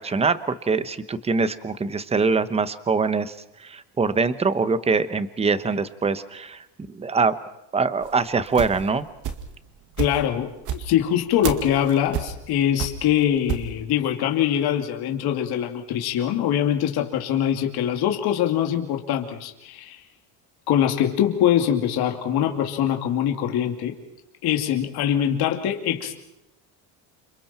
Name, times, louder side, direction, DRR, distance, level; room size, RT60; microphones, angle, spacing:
voice 1, 0.0-3.3 3.6-7.3 7.7-9.1, right 4 dB, 15° right, 12 dB, 1.0 m, -23 dB
sound 1, 8.0-9.6 10.0-13.7, right 8 dB, 45° right, 2.2 m, -30 dB
voice 2, 10.0-20.0 20.7-23.9 24.4-26.1, left 10 dB, 60° left, 3 dB, 2.8 m, -23 dB
30.0 x 28.0 x 4.5 m, 0.89 s
cardioid pair, 155°, 42 cm